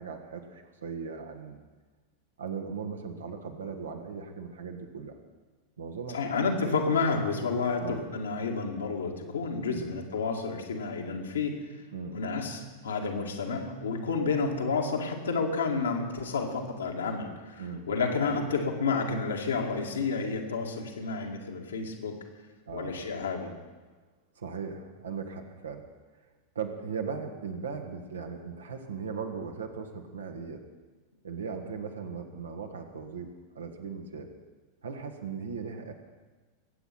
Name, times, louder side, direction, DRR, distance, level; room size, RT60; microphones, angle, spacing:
voice 1, 0.0-1.6 2.4-5.2 5.8-6.7 7.8-8.0 9.7-9.9 11.9-12.2 17.6-17.9 18.2-18.5 22.7-23.0 24.3-25.8 26.5-30.6 31.2-33.3 33.5-34.3 34.8-35.9, right 5 dB, 70° right, 4 dB, 1.7 m, -38 dB
voice 2, 6.1-11.6 12.1-22.2 22.7-23.5, left 4 dB, 70° left, 2 dB, 2.0 m, -30 dB
21.5 x 8.5 x 5.9 m, 1.3 s
figure-of-eight pair, 90°, 0 cm